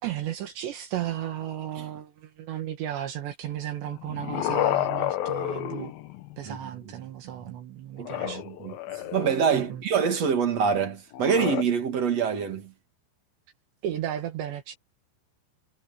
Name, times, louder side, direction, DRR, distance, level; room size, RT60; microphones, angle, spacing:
voice 1, 0.0-5.9 6.4-8.4 9.5-9.8 13.8-14.8, right 11 dB, 75° right, 3.9 m, -34 dB
sound 1, 3.9-6.5 8.0-9.7 11.1-11.6, left 13 dB, 70° left, 2.5 m, -30 dB
voice 2, 8.0-12.7, right 6 dB, 45° right, 2.6 m, -26 dB
omnidirectional pair, 5.2 m